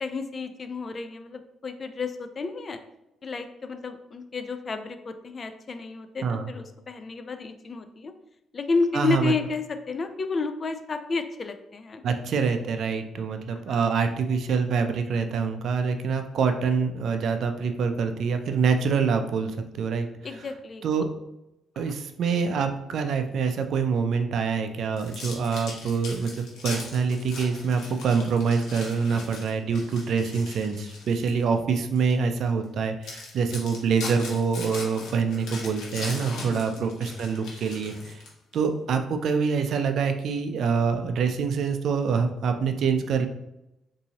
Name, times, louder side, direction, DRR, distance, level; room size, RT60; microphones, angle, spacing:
voice 1, 0.0-2.8 3.2-8.1 8.5-12.0 13.5-13.8 20.2-20.8 21.8-21.9 36.5-36.8, left 4 dB, 40° left, 8 dB, 0.4 m, -31 dB
voice 2, 8.9-9.3 12.0-20.1 20.4-20.5 20.8-21.1 21.8-38.2 38.5-43.3, right 5 dB, 65° right, 7 dB, 0.4 m, -25 dB
sound 1, 25.0-31.4 31.9-32.1 32.6-32.7 33.0-38.5, left 3 dB, 85° left, 0.9 m, -39 dB
4.0 x 2.7 x 2.8 m, 0.90 s
cardioid pair, 90°, 0 cm